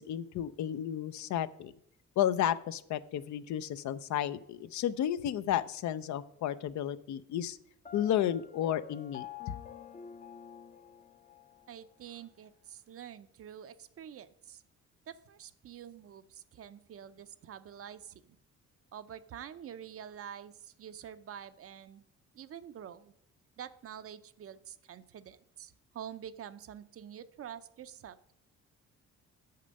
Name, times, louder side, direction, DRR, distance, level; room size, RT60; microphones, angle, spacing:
voice 1, 0.0-1.7 2.2-7.6 7.9-9.3, left 10 dB, 70° left, 14 dB, 0.5 m, -32 dB
Piano, 7.9-11.7, left 9 dB, 25° left, 0.6 m, -48 dB
voice 2, 11.7-14.6 15.1-18.4 18.9-22.1 22.3-23.1 23.6-28.3, right 9 dB, 50° right, 13 dB, 0.5 m, -47 dB
6.6 x 6.6 x 5.2 m, 0.71 s
cardioid pair, 90°, 30 cm